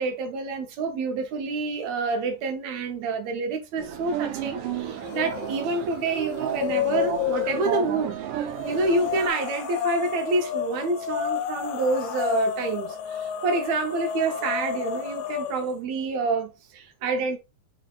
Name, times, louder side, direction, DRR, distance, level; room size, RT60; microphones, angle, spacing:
voice 1, 0.0-8.2 8.7-17.4, right 3 dB, 70° right, 2.0 m, -28 dB
sound 1, 3.8-9.3, right 8 dB, 85° right, 2.4 m, -32 dB
sound 2, 5.0-5.6 6.0-7.8 8.5-15.7, left 9 dB, 90° left, 1.4 m, -30 dB
5.3 x 4.0 x 2.4 m
omnidirectional pair, 3.6 m